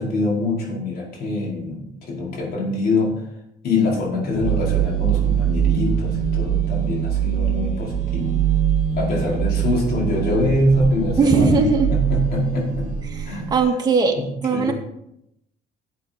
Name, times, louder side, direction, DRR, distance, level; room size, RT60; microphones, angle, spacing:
voice 1, 0.0-3.1 3.6-8.3 9.0-11.6 11.9-12.9 13.2-13.5 14.1-14.7, left 2 dB, 65° left, -2 dB, 5.0 m, -24 dB
sound 1, 4.3-13.7, right 9 dB, 50° right, 3.3 m, -23 dB
voice 2, 11.2-12.0 13.1-14.2 14.4-14.7, right 4 dB, 25° right, 1 dB, 2.2 m, -19 dB
13.0 x 8.3 x 4.4 m, 0.80 s
cardioid pair, 110°, 17 cm